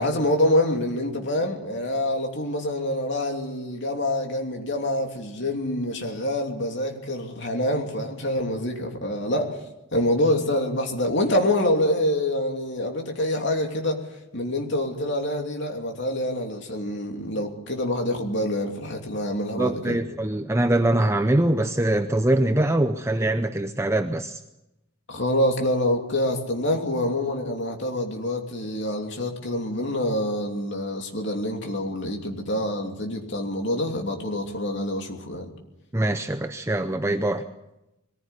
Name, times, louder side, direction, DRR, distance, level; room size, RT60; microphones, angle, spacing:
voice 1, 0.0-9.6 9.9-14.0 14.3-20.0 25.1-35.5, left 1 dB, 55° left, 2 dB, 3.0 m, -26 dB
voice 2, 19.6-24.4 35.9-37.4, right 1 dB, 10° right, 7 dB, 0.6 m, -23 dB
21.5 x 15.0 x 8.2 m, 0.91 s
head